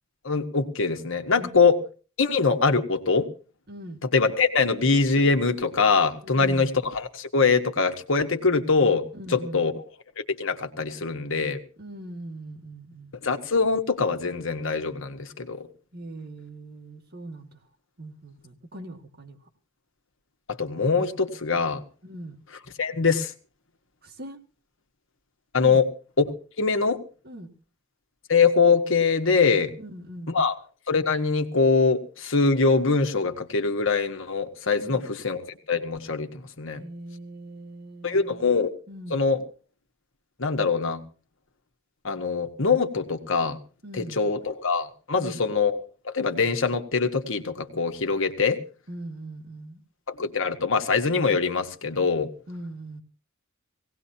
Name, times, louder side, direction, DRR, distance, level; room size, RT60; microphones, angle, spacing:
voice 1, 0.2-1.8 2.2-3.3 4.1-9.7 10.4-11.6 13.2-15.7 20.6-21.8 22.8-23.3 25.5-25.9 26.2-27.0 28.3-29.7 30.3-30.5 30.9-35.4 35.7-36.8 38.0-38.7 39.1-39.4 40.4-41.0 42.0-43.6 43.9-45.8 46.0-48.6 50.2-52.3, left 4 dB, 65° left, 7 dB, 1.5 m, -23 dB
voice 2, 1.3-1.8 3.7-4.0 6.2-6.7 9.1-9.6 11.8-13.2 15.9-17.6 18.0-19.4 22.0-22.4 24.0-24.4 25.6-25.8 27.2-27.5 29.8-30.3 34.8-35.0 36.8-38.4 38.9-39.2 43.8-44.2 45.2-45.4 48.9-49.8 52.5-53.0, right 1 dB, 50° right, 3 dB, 2.1 m, -41 dB
19.5 x 17.5 x 2.9 m, 0.37 s
head